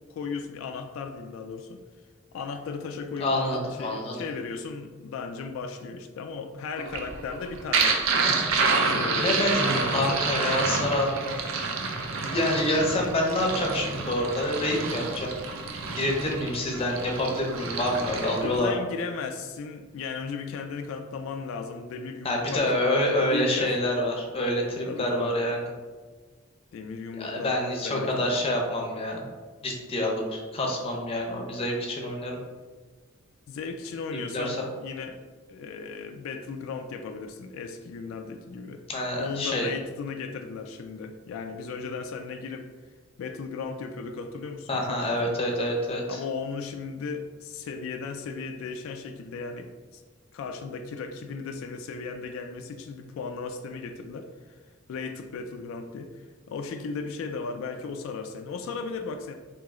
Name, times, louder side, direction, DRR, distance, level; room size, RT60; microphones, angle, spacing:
voice 1, 0.1-1.8 2.3-8.0 8.8-10.4 18.4-22.8 23.3-23.8 24.9-25.3 26.7-27.6 27.8-28.4 33.5-35.1 35.5-38.8 39.2-42.7 43.2-45.4 46.1-50.0 50.3-54.6 54.9-59.3, left 4 dB, 85° left, 6 dB, 0.3 m, -36 dB
voice 2, 3.2-4.1 9.1-11.4 12.3-15.3 15.9-18.8 22.2-25.6 27.2-29.3 29.6-32.4 34.1-34.7 38.9-39.7 44.7-46.2, left 1 dB, 30° left, 0 dB, 0.6 m, -27 dB
sound 1, 6.8-18.6, right 4 dB, 80° right, 0.5 m, -28 dB
3.0 x 2.8 x 3.6 m, 1.4 s
head